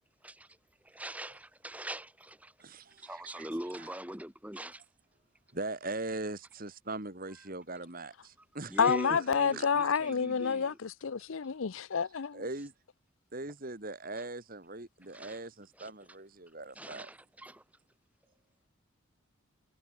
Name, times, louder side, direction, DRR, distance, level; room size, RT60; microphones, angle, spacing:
voice 1, 0.2-0.6 0.8-2.5 3.0-4.8 7.4-7.5 8.4-10.8 14.2-14.3 15.1-15.4 15.8-16.1 16.7-17.6, right 1 dB, 5° right, 2.2 m, -43 dB
voice 2, 2.6-3.1 3.4-3.5 5.5-8.8 9.5-9.9 12.3-12.7 13.3-17.1, right 2 dB, 40° right, 2.2 m, -40 dB
voice 3, 8.8-12.4, left 6 dB, 70° left, 0.6 m, -29 dB
head